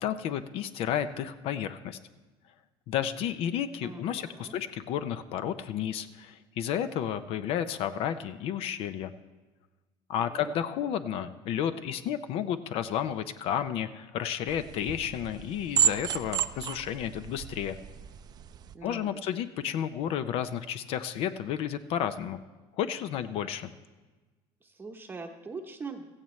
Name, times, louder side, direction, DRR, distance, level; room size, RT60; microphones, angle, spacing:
voice 1, 0.0-2.0 2.9-9.1 10.1-17.8 18.8-22.4 22.8-23.7, left 9 dB, 60° left, 11 dB, 0.6 m, -32 dB
voice 2, 3.8-4.6 10.2-10.5 18.7-19.4 24.6-26.1, right 4 dB, 20° right, 3 dB, 0.9 m, -42 dB
sound 1, 14.5-18.7, right 9 dB, 40° right, 0.5 m, -32 dB
16.0 x 15.0 x 3.2 m, 1.2 s
cardioid pair, 135°, 11 cm